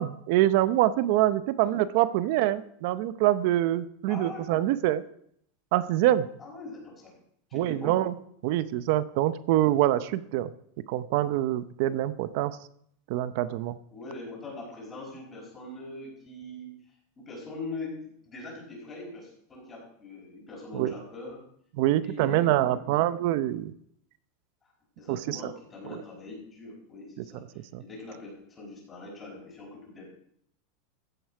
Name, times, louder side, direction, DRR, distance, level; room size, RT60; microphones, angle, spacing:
voice 1, 0.0-5.0 5.7-6.3 7.5-8.1 8.4-10.5 10.9-12.6 13.1-13.8 20.7-20.9 21.8-23.7 25.1-25.4 25.9-26.0 27.7-27.8, right 14 dB, 55° right, 14 dB, 0.6 m, -25 dB
voice 2, 4.1-4.5 6.4-7.1 7.5-8.0 13.9-16.7 17.2-21.4 22.0-23.0 24.6-24.7 25.0-30.1, left 2 dB, 25° left, -4 dB, 4.8 m, -42 dB
15.0 x 7.9 x 4.8 m, 0.68 s
supercardioid pair, 145°, 0 cm